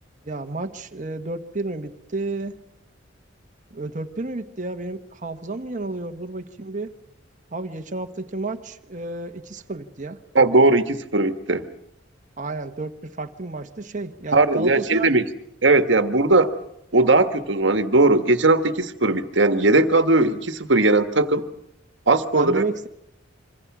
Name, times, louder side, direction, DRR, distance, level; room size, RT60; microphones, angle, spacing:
voice 1, 0.2-2.6 3.7-6.9 7.5-10.2 12.4-15.1 22.3-22.9, right 2 dB, 40° right, 6 dB, 1.3 m, -31 dB
voice 2, 10.3-11.7 14.3-15.2 15.6-16.5 16.9-21.5 22.1-22.6, right 2 dB, 70° right, 9 dB, 1.6 m, -18 dB
26.5 x 25.0 x 6.2 m, 0.76 s
head